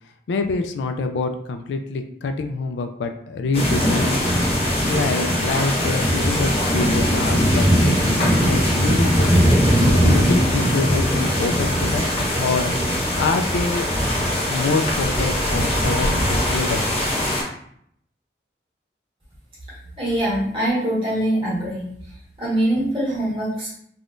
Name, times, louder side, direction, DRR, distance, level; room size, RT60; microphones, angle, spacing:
voice 1, 0.3-4.3 4.9-9.3 9.9-12.0 12.4-12.7 13.2-13.9 14.5-17.0, left 3 dB, 90° left, 6 dB, 0.3 m, -26 dB
sound 1, 3.5-17.4, equal, 35° left, 0.8 m, -20 dB
voice 2, 20.0-21.9 22.4-23.7, right 1 dB, 30° right, -8 dB, 1.4 m, -23 dB
3.4 x 2.2 x 2.5 m, 0.69 s
head